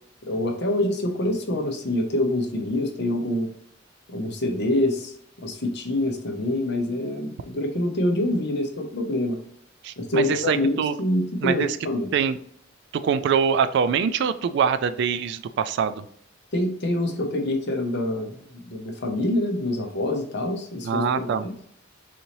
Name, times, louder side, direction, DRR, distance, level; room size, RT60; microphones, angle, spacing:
voice 1, 0.3-3.5 4.1-9.4 10.0-12.1 16.5-21.5, left 1 dB, 60° left, 3 dB, 0.8 m, -26 dB
voice 2, 9.8-10.9 11.4-11.7 12.1-12.4 13.0-16.1 20.8-21.5, right 7 dB, 60° right, 12 dB, 0.3 m, -24 dB
4.1 x 2.7 x 2.9 m, 0.63 s
head